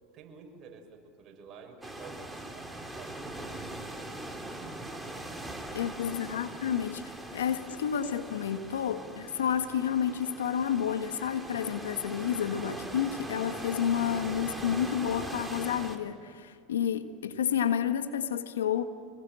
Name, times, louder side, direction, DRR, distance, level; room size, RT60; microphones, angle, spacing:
voice 1, 0.1-5.6 5.9-6.2 13.5-13.6, right 5 dB, 45° right, 6.4 m, -52 dB
sound 1, 1.8-16.0, right 1 dB, 5° right, 3.5 m, -41 dB
voice 2, 5.7-7.0 7.3-18.8, left 9 dB, 90° left, 1.6 m, -30 dB
27.0 x 21.5 x 7.8 m
hypercardioid pair, 95°, 0 cm